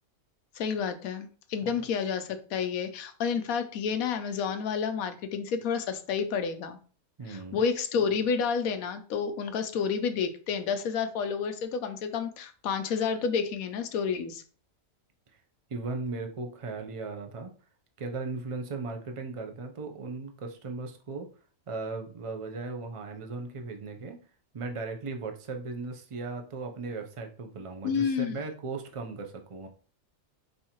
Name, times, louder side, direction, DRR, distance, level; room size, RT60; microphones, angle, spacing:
voice 1, 0.6-6.8 7.3-14.4 27.8-28.4, left 6 dB, 80° left, 9 dB, 1.1 m, -30 dB
voice 2, 7.2-7.6 15.7-17.5 18.0-21.3 21.7-24.2 24.5-29.7, right 3 dB, 60° right, 4 dB, 0.3 m, -37 dB
5.3 x 2.7 x 2.9 m, 0.40 s
omnidirectional pair, 1.5 m